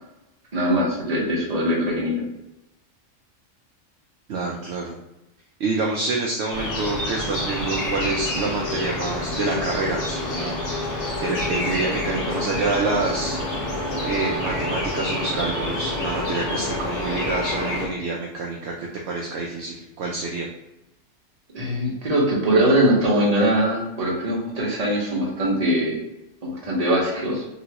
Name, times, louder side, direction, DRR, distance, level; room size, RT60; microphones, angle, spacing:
voice 1, 0.5-2.2 21.5-26.0 26.4-27.4, right 1 dB, 35° right, -4 dB, 0.9 m, -21 dB
voice 2, 4.3-4.9 5.6-10.6 11.2-13.4 14.0-20.5, right 3 dB, 65° right, -1 dB, 0.7 m, -27 dB
sound 1, 6.5-17.9, left 2 dB, 65° left, 1.2 m, -27 dB
3.1 x 3.0 x 2.8 m, 0.94 s
omnidirectional pair, 1.3 m